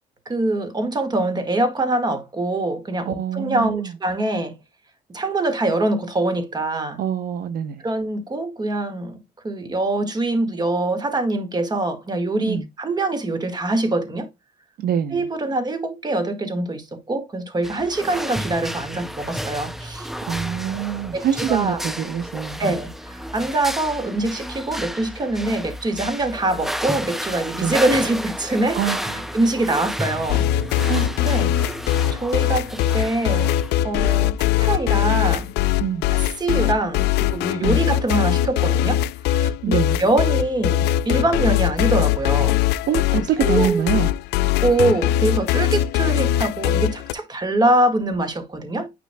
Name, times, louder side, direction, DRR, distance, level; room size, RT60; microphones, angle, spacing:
voice 1, 0.3-4.6 5.1-7.0 7.8-9.2 9.4-14.3 15.1-20.1 21.1-21.8 22.6-28.9 29.3-30.5 31.2-31.6 32.1-33.6 33.8-35.5 36.1-42.6 43.1-44.0 44.6-48.9, right 2 dB, 25° right, 1.8 m, -24 dB
voice 2, 3.1-3.9 7.0-7.8 12.5-12.7 14.8-15.3 20.3-22.7 27.6-27.8 28.7-29.3 30.9-31.1 35.8-36.1 37.6-37.8 39.6-40.0 42.9-44.1, right 9 dB, 60° right, 0.8 m, -25 dB
sound 1, 17.6-33.7, equal, ahead, 0.5 m, -32 dB
sound 2, 30.3-47.1, left 12 dB, 80° left, 0.4 m, -21 dB
9.4 x 5.4 x 2.2 m
cardioid pair, 110°, 17 cm